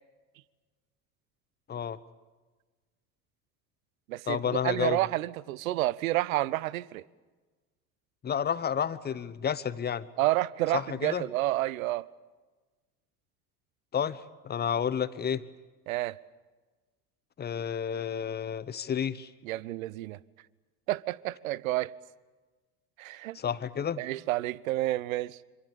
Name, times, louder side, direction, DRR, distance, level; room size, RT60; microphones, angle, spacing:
voice 1, 1.7-2.0 4.3-5.0 8.2-10.1 10.7-11.3 13.9-15.4 17.4-19.3 23.3-24.0, left 8 dB, 20° left, 1.1 m, -31 dB
voice 2, 4.1-7.0 10.2-12.1 15.9-16.2 19.4-20.2 20.9-21.9 23.0-23.4 24.0-25.4, right 17 dB, 60° right, 0.9 m, -30 dB
26.5 x 26.5 x 7.1 m
figure-of-eight pair, 70°, 47 cm